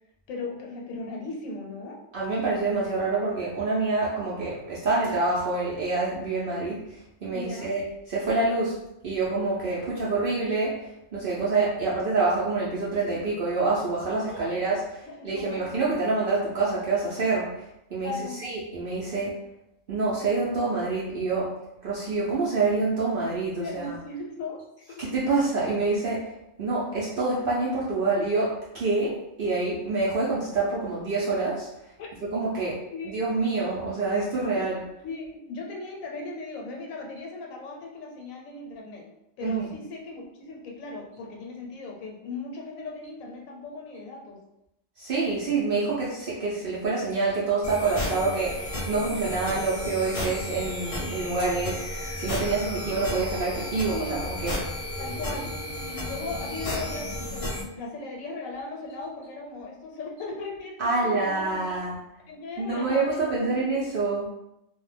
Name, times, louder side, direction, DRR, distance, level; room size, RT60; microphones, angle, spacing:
voice 1, 0.3-2.0 7.3-7.7 14.3-14.6 15.0-15.7 18.0-18.4 23.6-24.6 24.9-25.1 32.0-32.1 32.9-33.2 34.5-34.7 35.0-39.1 39.4-44.4 48.1-48.3 48.9-49.2 53.9-54.2 55.0-55.5 55.9-61.8 62.3-63.3, left 3 dB, 90° left, -1 dB, 1.0 m, -37 dB
voice 2, 2.1-17.6 17.9-18.1 18.4-19.4 19.9-21.5 21.8-23.9 25.0-26.3 26.6-31.7 32.2-32.7 33.0-34.8 39.4-39.7 45.0-54.0 54.2-54.6 60.8-62.0 62.6-64.3, right 3 dB, 65° right, -6 dB, 0.5 m, -27 dB
sound 1, 47.6-57.6, left 1 dB, 45° left, 0.4 m, -33 dB
2.3 x 2.0 x 3.2 m, 0.85 s
omnidirectional pair, 1.4 m